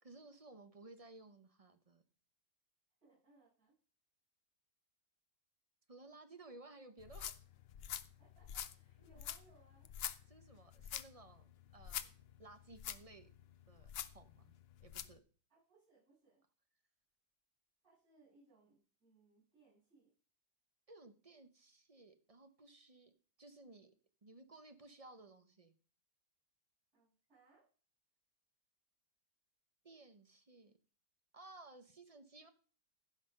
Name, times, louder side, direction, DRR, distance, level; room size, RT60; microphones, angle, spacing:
voice 1, 0.0-2.0 5.9-7.4 9.0-9.2 10.3-12.1 12.4-13.3 13.7-14.5 14.8-15.2 20.9-23.1 23.4-23.9 24.2-25.7 29.8-30.7 31.3-32.5, right 2 dB, 30° right, 8 dB, 0.7 m, -58 dB
voice 2, 3.0-3.7 8.2-9.9 15.5-16.4 17.8-20.1 26.9-27.7, right 3 dB, 55° right, -11 dB, 8.2 m, -69 dB
sound 1, 7.0-15.2, left 9 dB, 75° left, 0.5 m, -47 dB
15.0 x 5.8 x 5.3 m, 0.40 s
omnidirectional pair, 1.8 m